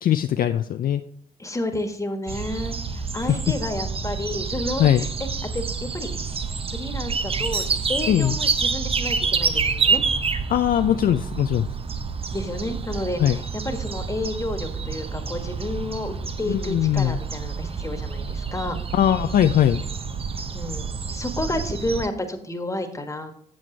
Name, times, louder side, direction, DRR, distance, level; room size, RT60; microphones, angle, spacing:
voice 1, 0.0-1.0 3.3-3.4 4.8-5.0 8.1-8.4 10.5-11.7 13.2-13.4 16.5-17.2 18.9-19.8, left 11 dB, 55° left, 8 dB, 0.4 m, -20 dB
voice 2, 1.4-5.1 5.5-6.1 6.7-7.6 7.9-10.0 12.3-18.8 20.5-23.3, left 1 dB, 15° left, 6 dB, 1.5 m, -31 dB
sound 1, 2.3-22.1, right 5 dB, 30° right, 0.8 m, -28 dB
7.7 x 7.4 x 4.0 m, 0.63 s
hypercardioid pair, 50°, 18 cm